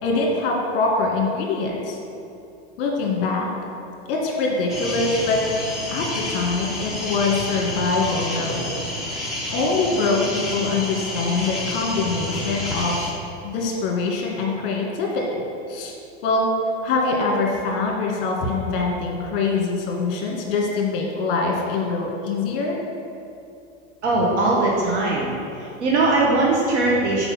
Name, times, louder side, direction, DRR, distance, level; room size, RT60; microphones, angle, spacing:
voice 1, 0.0-2.0 2.8-3.5 4.1-5.4 5.9-8.7 9.5-13.0 13.4-15.9 16.2-16.5 16.8-22.8, left 3 dB, 50° left, -1 dB, 1.6 m, -24 dB
sound 1, 4.7-13.1, left 1 dB, ahead, 0.8 m, -29 dB
voice 2, 24.0-25.3 25.5-27.3, right 2 dB, 70° right, -3 dB, 1.4 m, -20 dB
6.6 x 4.7 x 5.8 m, 2.7 s
supercardioid pair, 150°, 35 cm